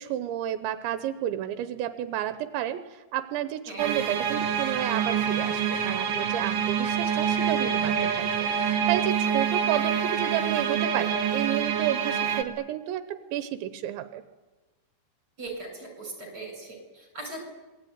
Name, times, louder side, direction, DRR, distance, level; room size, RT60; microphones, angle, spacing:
voice 1, 0.0-14.2, right 12 dB, 85° right, 10 dB, 3.4 m, -31 dB
sound 1, 3.8-12.4, right 7 dB, 55° right, 3.1 m, -26 dB
voice 2, 15.4-17.5, right 2 dB, 20° right, 3 dB, 8.1 m, -39 dB
26.5 x 20.5 x 9.6 m, 1.2 s
omnidirectional pair, 5.1 m